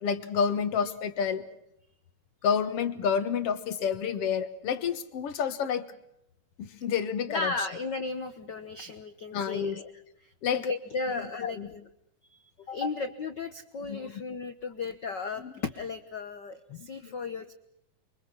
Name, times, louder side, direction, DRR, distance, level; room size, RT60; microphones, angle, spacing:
voice 1, 0.0-1.4 2.4-5.9 6.6-7.7 9.3-9.8 10.4-10.7 11.1-11.7 12.8-12.9 13.8-14.1 15.4-15.5 16.7-17.2, left 7 dB, 55° left, 11 dB, 2.1 m, -30 dB
voice 2, 7.3-9.9 10.2-11.8 12.3-17.5, left 4 dB, 85° left, 10 dB, 0.9 m, -35 dB
30.0 x 24.5 x 5.7 m, 0.78 s
omnidirectional pair, 3.9 m